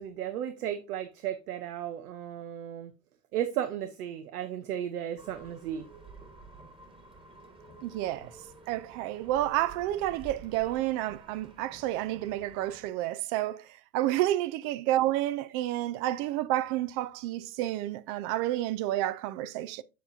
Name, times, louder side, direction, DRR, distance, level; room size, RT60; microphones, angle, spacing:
voice 1, 0.0-2.9 3.3-5.9, right 10 dB, 80° right, 0.9 m, -34 dB
sound 1, 5.2-12.9, right 3 dB, 10° right, 1.5 m, -51 dB
voice 2, 7.8-8.3 8.7-13.7 13.9-19.8, right 14 dB, 45° right, 0.6 m, -30 dB
7.7 x 6.9 x 2.6 m
hypercardioid pair, 100°, 44 cm